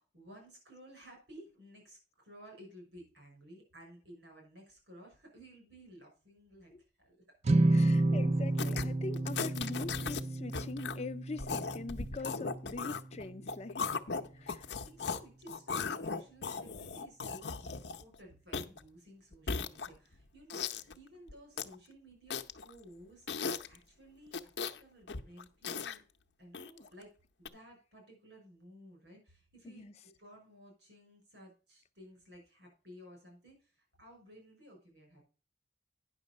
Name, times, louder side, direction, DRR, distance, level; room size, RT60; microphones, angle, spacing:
voice 1, 0.0-6.7 7.0-7.4 7.7-7.9 14.2-26.0 26.4-27.1 27.4-35.2, equal, 75° right, 6.0 m, -56 dB
sound 1, 7.4-13.9, right 2 dB, 35° right, 0.4 m, -31 dB
voice 2, 7.7-13.9 14.3-14.7 20.5-20.7 29.6-29.9, left 3 dB, 35° left, 0.5 m, -43 dB
sound 2, 8.6-8.9 9.1-10.2 10.5-11.0 11.4-15.2 15.5-18.1 18.5-18.8 19.3-20.1 20.5-20.9 21.3-21.7 22.3-22.7 23.3-23.8 24.3-24.8 25.1-26.0 26.5-26.9 27.5-27.6, left 5 dB, 70° left, 0.7 m, -37 dB
9.8 x 6.3 x 5.2 m
head